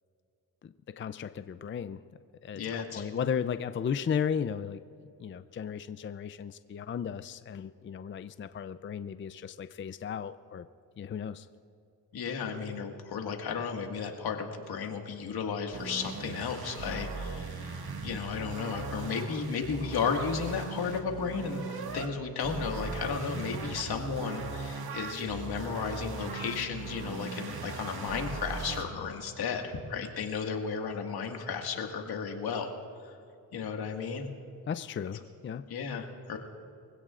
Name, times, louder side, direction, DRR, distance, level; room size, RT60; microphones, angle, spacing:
voice 1, 0.6-2.0 2.4-4.8 5.2-10.7 11.0-11.5 34.7-35.7, left 7 dB, 30° left, 12 dB, 0.4 m, -35 dB
voice 2, 2.5-3.1 12.1-21.6 21.9-32.7 33.0-33.1 33.5-34.3 35.7-36.4, left 6 dB, 75° left, 3 dB, 1.9 m, -34 dB
sound 1, 15.7-22.1 22.4-28.8, right 4 dB, 70° right, 1.8 m, -39 dB
24.0 x 16.5 x 2.5 m, 2.6 s
cardioid pair, 85°, 38 cm